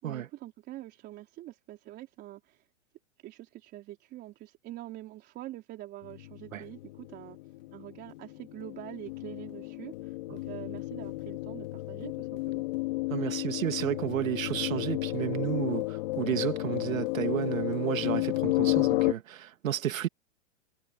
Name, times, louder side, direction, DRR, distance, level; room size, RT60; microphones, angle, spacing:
voice 1, 0.0-2.7 3.2-7.4 7.7-12.6, right 15 dB, 25° right, 3.8 m, -45 dB
sound 1, 6.0-19.1, left 21 dB, 45° left, 2.2 m, -32 dB
voice 2, 13.1-20.1, right 11 dB, 80° right, 2.3 m, -32 dB
hypercardioid pair, 160°, 39 cm